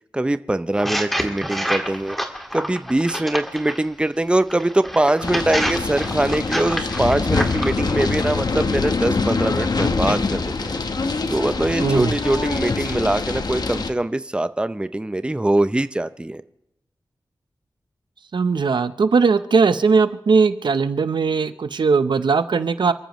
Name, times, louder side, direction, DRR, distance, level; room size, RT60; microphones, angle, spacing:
voice 1, 0.1-2.2 2.5-10.7 11.3-16.4, right 1 dB, 15° right, 12 dB, 0.6 m, -22 dB
sound 1, 0.7-3.8 4.5-7.8, equal, ahead, 2.1 m, -27 dB
sound 2, 5.2-13.9, left 4 dB, 60° left, 1.1 m, -24 dB
voice 2, 11.8-12.1 18.3-22.9, right 5 dB, 85° right, 11 dB, 0.8 m, -19 dB
29.0 x 14.0 x 3.1 m, 0.85 s
wide cardioid pair, 95°, 8 cm